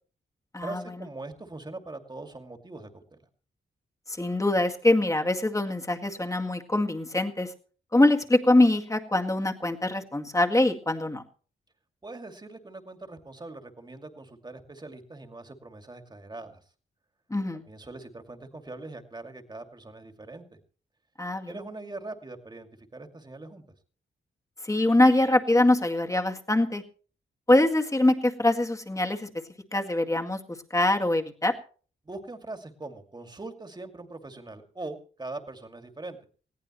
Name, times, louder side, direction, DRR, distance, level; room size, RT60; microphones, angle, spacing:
voice 1, 0.6-3.2 12.0-16.6 17.7-20.6 21.5-23.6 32.0-36.2, right 2 dB, 20° right, 6 dB, 2.5 m, -42 dB
voice 2, 4.1-7.5 7.9-11.2 17.3-17.6 21.2-21.6 24.6-26.8 27.5-29.3 29.7-30.4 30.7-31.5, left 1 dB, 15° left, 3 dB, 2.0 m, -23 dB
20.0 x 17.5 x 3.1 m, 0.40 s
wide cardioid pair, 125°, 20 cm